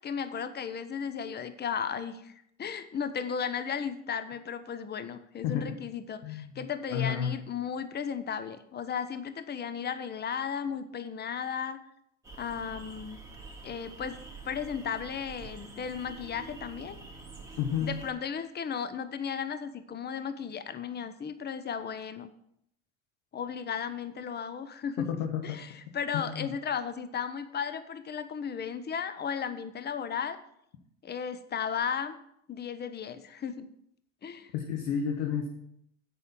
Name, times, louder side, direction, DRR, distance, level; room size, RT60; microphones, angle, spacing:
voice 1, 0.0-2.3 2.6-11.8 12.4-13.2 13.6-14.2 14.4-17.0 17.8-22.3 23.3-25.1 25.4-25.7 25.9-30.4 31.0-32.1 32.5-33.7 34.2-34.5, left 7 dB, 25° left, 11 dB, 0.9 m, -35 dB
voice 2, 5.4-5.8 6.2-7.4 17.6-17.9 25.0-25.6 26.1-26.5 34.5-35.5, left 8 dB, 75° left, 3 dB, 1.4 m, -31 dB
sound 1, 12.2-18.1, right 3 dB, 10° right, 2.7 m, -47 dB
8.0 x 6.4 x 7.5 m, 0.73 s
hypercardioid pair, 80°, 37 cm